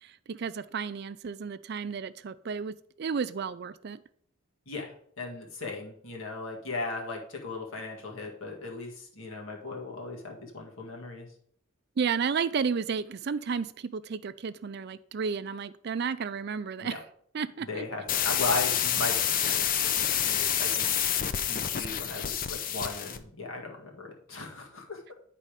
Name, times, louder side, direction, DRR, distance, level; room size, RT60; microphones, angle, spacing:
voice 1, 0.3-4.0 12.0-16.9 17.3-17.9, right 6 dB, 50° right, 14 dB, 0.4 m, -32 dB
voice 2, 4.7-11.3 16.8-17.0 17.6-20.9 21.2-25.1, left 3 dB, 70° left, 0 dB, 1.9 m, -37 dB
sound 1, 18.1-23.2, left 9 dB, 40° left, 0.5 m, -28 dB
10.5 x 4.2 x 5.0 m, 0.63 s
head